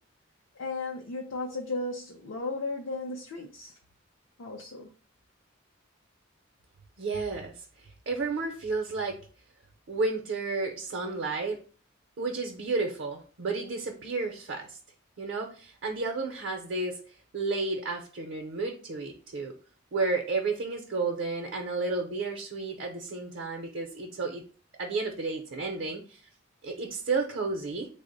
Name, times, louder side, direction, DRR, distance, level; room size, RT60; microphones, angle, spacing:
voice 1, 0.6-3.8 4.4-4.9, left 3 dB, 70° left, 0.5 m, -35 dB
voice 2, 7.0-9.2 9.9-11.6 12.2-14.8 15.2-19.5 19.9-24.4 24.8-26.2 26.6-27.9, right 3 dB, 65° right, 0.5 m, -32 dB
3.4 x 2.0 x 3.8 m
head